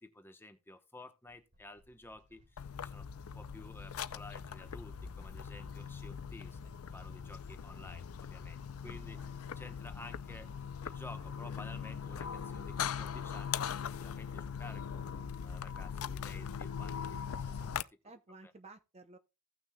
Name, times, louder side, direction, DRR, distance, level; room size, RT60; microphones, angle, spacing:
voice 1, 0.0-6.6 6.9-9.2 9.6-10.5 10.8-17.8 18.4-18.5, left 2 dB, 10° left, 0.9 m, -53 dB
sound 1, 1.3-2.8 4.7-6.1 7.9-9.3 11.0-12.2 13.6-14.6 16.5-17.8, equal, 55° right, 3.5 m, -69 dB
sound 2, 2.6-17.8, left 7 dB, 75° left, 0.5 m, -41 dB
voice 2, 8.8-9.4 18.0-19.2, right 3 dB, 30° right, 0.6 m, -55 dB
16.0 x 6.2 x 2.2 m
head